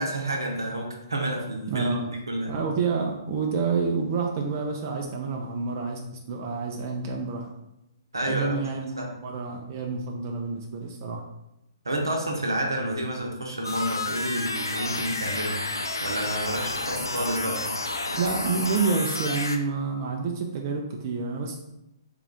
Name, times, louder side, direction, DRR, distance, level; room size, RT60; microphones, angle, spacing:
voice 1, 0.0-2.5 8.1-8.6 9.0-9.1 11.8-15.6 16.0-17.6, right 1 dB, 85° right, 0 dB, 0.8 m, -29 dB
voice 2, 1.7-2.1 2.5-6.0 6.3-7.5 8.3-8.9 9.1-11.2 18.1-21.6, right 4 dB, 40° right, 0 dB, 0.5 m, -28 dB
sound 1, 13.6-19.6, left 2 dB, 85° left, 0.4 m, -30 dB
3.7 x 2.4 x 3.4 m, 0.85 s
figure-of-eight pair, 125°, 2 cm